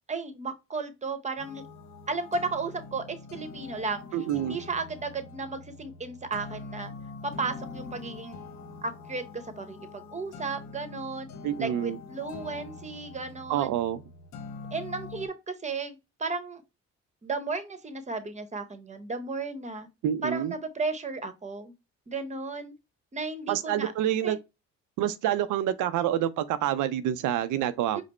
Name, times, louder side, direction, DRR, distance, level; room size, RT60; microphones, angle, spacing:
voice 1, 0.1-1.6 2.1-4.0 4.4-6.9 7.2-8.4 8.8-11.3 11.6-13.7 14.7-16.6 17.2-19.9 20.2-21.7 22.1-22.7 23.1-23.9 24.2-24.4 27.9-28.0, right 4 dB, 25° right, 0.9 m, -34 dB
sound 1, 1.4-15.3, left 4 dB, 70° left, 0.9 m, -44 dB
voice 2, 4.1-4.6 11.4-12.0 13.5-14.0 20.0-20.5 23.5-24.4 25.0-28.0, right 11 dB, 85° right, 0.5 m, -27 dB
5.1 x 2.0 x 4.2 m
cardioid pair, 90°, 30 cm